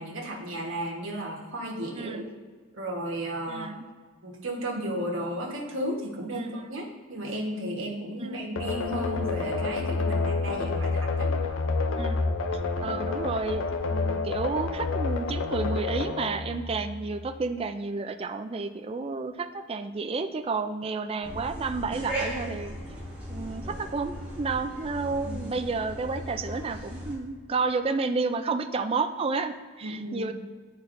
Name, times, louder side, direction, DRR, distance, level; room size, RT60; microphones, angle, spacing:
voice 1, 0.0-2.2 2.7-3.7 4.2-11.3 12.8-13.0 25.2-25.5 29.8-30.3, right 1 dB, 70° right, -2 dB, 1.3 m, -34 dB
voice 2, 1.9-2.2 3.5-3.9 6.3-6.8 8.2-8.4 12.0-12.2 12.8-13.6 13.9-22.7 23.3-30.3, right 4 dB, 25° right, 7 dB, 0.3 m, -31 dB
sound 1, 8.6-17.2, left 3 dB, 65° left, 0.5 m, -29 dB
sound 2, 21.2-27.2, equal, 10° right, 1.4 m, -37 dB
10.5 x 4.0 x 2.6 m, 1.5 s
head